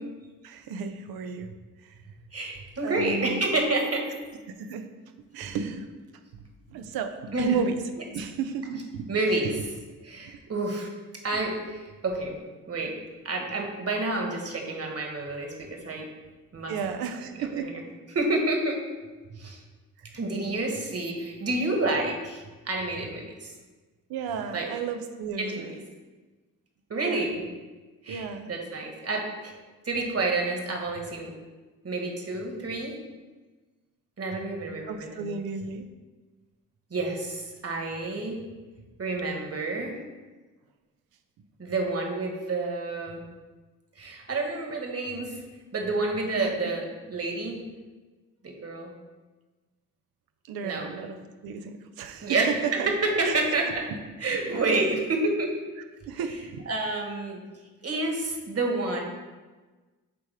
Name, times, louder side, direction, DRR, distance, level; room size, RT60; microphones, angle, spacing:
voice 1, 0.4-1.5 1.8-1.9 2.8-3.4 4.6-4.9 5.3-6.0 6.7-7.7 8.1-9.1 11.3-11.4 16.7-17.7 24.1-25.7 27.0-27.2 28.1-28.5 34.9-35.8 46.4-46.5 50.5-51.2 51.4-52.4 52.8-52.9 53.2-53.3 54.5-54.6 56.1-56.6, right 6 dB, 85° right, 8 dB, 0.6 m, -33 dB
voice 2, 2.3-4.1 7.3-7.6 9.1-9.6 10.0-10.9 11.2-12.4 12.7-13.0 13.2-16.1 16.5-16.7 17.4-17.8 18.1-18.8 19.3-19.6 20.1-23.5 24.5-24.7 25.4-25.8 26.9-27.4 28.0-29.5 29.8-31.3 31.8-32.9 34.2-35.4 36.9-38.4 39.0-40.0 41.6-43.2 44.0-45.4 45.7-47.6 48.4-48.9 50.6-50.9 52.2-53.9 54.2-55.5 56.2-56.4 56.7-57.4 57.8-59.0, right 2 dB, 40° right, 1 dB, 1.5 m, -29 dB
8.8 x 3.4 x 3.5 m, 1.3 s
supercardioid pair, 50°, 35 cm